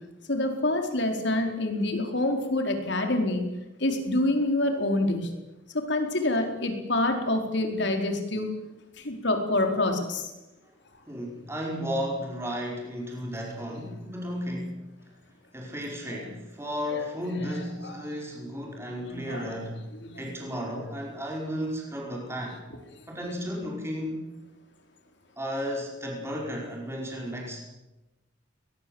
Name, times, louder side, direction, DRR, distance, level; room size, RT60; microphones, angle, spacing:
voice 1, 0.3-3.5 3.8-5.3 5.7-8.5 9.0-10.3 16.9-17.0 17.5-17.6 17.8-17.9 19.0-19.5 20.0-20.2, left 2 dB, 60° left, 5 dB, 4.3 m, -27 dB
voice 2, 11.1-14.8 15.5-19.9 20.2-22.6 23.1-24.4 25.4-27.6, equal, 15° right, -1 dB, 5.2 m, -34 dB
22.5 x 21.0 x 8.0 m, 1.0 s
head